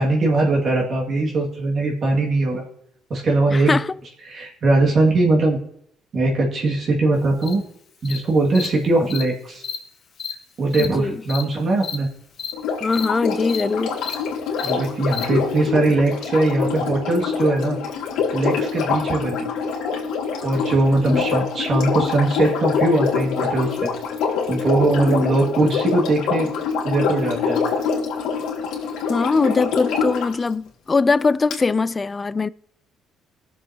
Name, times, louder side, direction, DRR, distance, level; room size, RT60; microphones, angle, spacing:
voice 1, 0.0-2.6 3.1-3.8 4.3-5.6 6.1-7.6 8.0-9.6 10.6-12.1 14.6-17.8 18.3-19.5 20.4-23.9 24.5-26.5 26.8-27.6, right 2 dB, 45° right, 2.1 m, -20 dB
voice 2, 3.5-3.9 10.8-11.2 12.8-14.0 21.1-21.2 25.0-25.3 29.1-32.5, left 4 dB, 25° left, 0.3 m, -21 dB
Cricket, 7.4-7.5 8.0-8.2 8.5-8.7 9.1-9.2 9.6-9.8 10.2-10.3 10.7-10.9 11.3-11.4 11.8-11.9 12.4-12.5 12.9-13.0 13.5-13.6 14.0-14.1 14.6-14.7 15.1-15.2, left 7 dB, 50° left, 2.1 m, -30 dB
Sink (filling or washing), 12.5-30.3 31.5-31.6, left 6 dB, 80° left, 2.3 m, -25 dB
20.5 x 7.0 x 2.8 m
cardioid pair, 115°, 0 cm